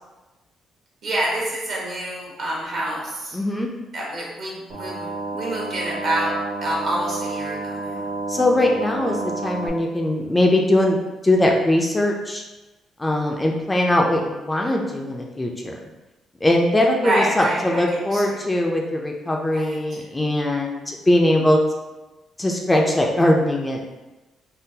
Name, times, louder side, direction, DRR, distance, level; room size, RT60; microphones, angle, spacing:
voice 1, 1.0-3.4 3.9-6.3 6.6-8.1 17.0-17.8 18.1-18.4 19.5-20.0, right 1 dB, 60° right, -4 dB, 1.1 m, -27 dB
voice 2, 3.3-3.7 8.3-12.4 13.0-15.8 16.4-21.6 22.4-23.8, left 1 dB, 15° left, 0 dB, 0.4 m, -21 dB
sound 1, 4.7-9.7, right 3 dB, 90° right, 1.2 m, -30 dB
3.6 x 2.0 x 2.7 m, 1.1 s
cardioid pair, 90°, 0 cm